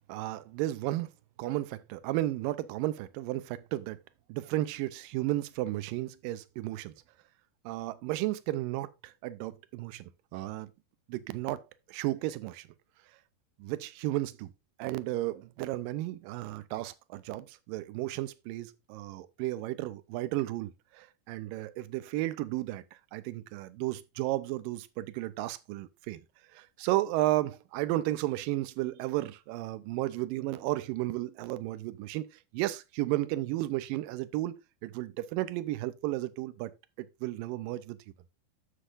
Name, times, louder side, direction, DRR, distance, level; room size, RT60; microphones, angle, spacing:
voice 1, 0.1-1.1 1.4-4.0 4.3-6.9 7.7-10.7 11.1-11.6 11.9-12.7 13.6-14.5 14.8-26.2 26.5-34.6 34.8-36.7 37.0-38.0, right 16 dB, 80° right, 2.0 m, -33 dB
10.0 x 7.4 x 2.5 m
omnidirectional pair, 4.7 m